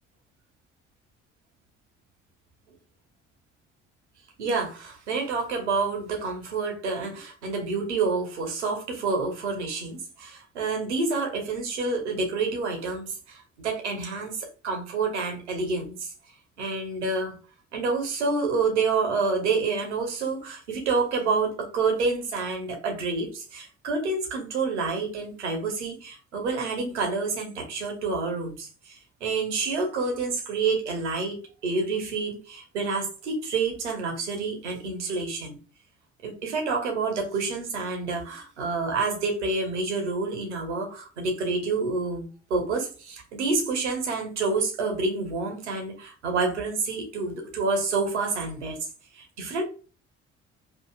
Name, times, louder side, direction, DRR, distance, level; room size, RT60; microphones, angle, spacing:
voice 1, 4.4-16.1 16.6-17.4 17.7-35.6 36.2-48.8 49.1-49.6, right 4 dB, 75° right, 2 dB, 1.1 m, -28 dB
5.8 x 2.8 x 2.4 m, 0.36 s
figure-of-eight pair, 45°, 35 cm